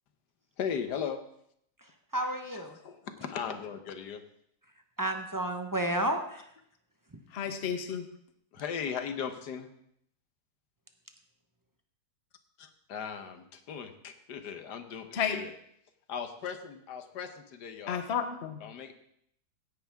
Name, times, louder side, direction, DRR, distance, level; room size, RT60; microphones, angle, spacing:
voice 1, 0.6-1.2 2.2-4.2 7.9-8.0 8.5-9.7 12.6-15.5 16.1-18.0 18.6-18.9, left 7 dB, 80° left, 8 dB, 1.6 m, -38 dB
voice 2, 2.1-2.8 5.0-6.4, right 1 dB, 15° right, 5 dB, 0.7 m, -31 dB
voice 3, 7.3-8.1 15.1-15.4 17.9-18.6, left 7 dB, 45° left, 8 dB, 1.1 m, -32 dB
16.5 x 10.0 x 3.6 m, 0.71 s
omnidirectional pair, 1.7 m